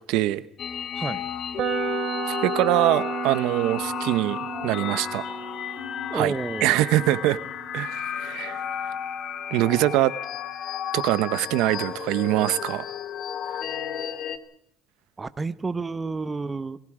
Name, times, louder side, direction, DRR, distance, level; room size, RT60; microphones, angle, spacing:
voice 1, 0.1-0.4 2.3-5.3 6.1-6.3 6.6-7.4 7.7-8.6 9.5-10.2 10.9-12.9, right 16 dB, 85° right, 0.9 m, -23 dB
sound 1, 0.6-14.4, left 9 dB, 55° left, 2.1 m, -33 dB
sound 2, 1.6-9.5, right 7 dB, 60° right, 2.8 m, -34 dB
voice 2, 6.1-6.9 15.2-16.8, right 3 dB, 20° right, 1.1 m, -30 dB
28.5 x 22.5 x 5.0 m
cardioid pair, 115°, 0 cm